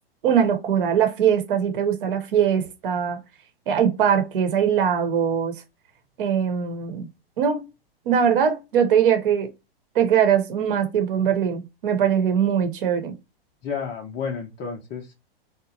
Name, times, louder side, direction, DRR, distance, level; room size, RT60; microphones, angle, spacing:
voice 1, 0.2-3.2 3.7-5.6 6.2-7.1 7.4-7.7 8.1-9.5 9.9-13.1, right 8 dB, 60° right, 0.9 m, -21 dB
voice 2, 13.6-15.1, left 6 dB, 25° left, 0.5 m, -31 dB
2.9 x 2.1 x 2.7 m
hypercardioid pair, 110°, 31 cm